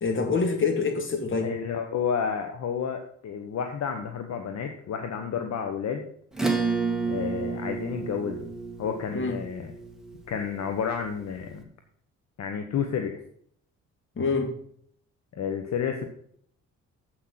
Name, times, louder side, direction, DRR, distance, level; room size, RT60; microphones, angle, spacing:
voice 1, 0.0-1.5 9.1-9.4 14.2-14.5, left 4 dB, 40° left, 5 dB, 2.4 m, -26 dB
voice 2, 1.4-6.0 7.0-8.4 8.8-9.7 10.3-11.7 12.4-13.2 15.3-16.1, left 7 dB, 60° left, 5 dB, 1.3 m, -30 dB
Acoustic guitar / Strum, 6.3-11.3, right 4 dB, ahead, 1.9 m, -31 dB
8.1 x 6.4 x 7.5 m, 0.63 s
cardioid pair, 90°, 30 cm